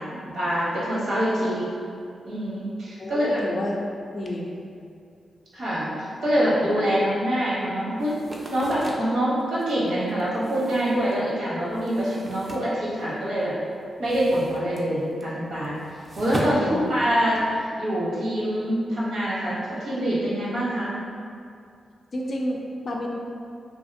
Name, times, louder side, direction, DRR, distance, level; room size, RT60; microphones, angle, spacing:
voice 1, 0.0-1.7 2.2-3.4 5.5-8.2 8.5-13.6 14.0-15.8 16.2-20.9, equal, 80° right, -8 dB, 0.9 m, -25 dB
voice 2, 3.0-3.8 4.1-4.5 16.6-16.8 22.1-23.1, left 1 dB, 50° left, 0 dB, 0.3 m, -30 dB
sound 1, 8.0-13.4 13.7-17.6, right 1 dB, 35° right, 0.4 m, -38 dB
2.8 x 2.4 x 2.6 m, 2.4 s
cardioid pair, 85°, 0 cm